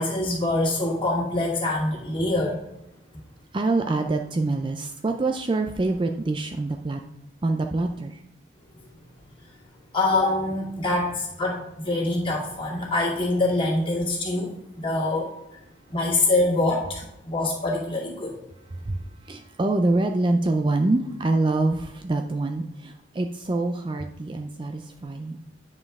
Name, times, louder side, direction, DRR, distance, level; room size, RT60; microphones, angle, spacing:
voice 1, 0.0-2.6 9.9-15.3 15.9-18.3, left 2 dB, 25° left, -4 dB, 2.2 m, -25 dB
voice 2, 3.5-7.0 7.4-8.2 18.7-25.4, right 2 dB, 25° right, 4 dB, 0.3 m, -25 dB
9.5 x 5.3 x 3.5 m, 0.85 s
head